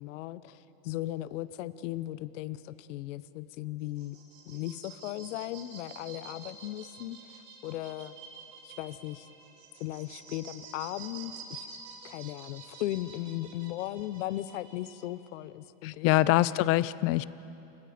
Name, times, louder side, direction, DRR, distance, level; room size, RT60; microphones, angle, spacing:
voice 1, 0.0-4.2 4.5-8.2 8.6-9.3 9.8-11.7 12.0-16.2, left 15 dB, 80° left, 16 dB, 0.9 m, -37 dB
sound 1, 3.8-15.1, right 5 dB, 80° right, 7.6 m, -49 dB
voice 2, 15.8-17.3, left 16 dB, 40° left, 18 dB, 0.5 m, -24 dB
29.0 x 26.0 x 5.1 m, 2.9 s
supercardioid pair, 145°, 36 cm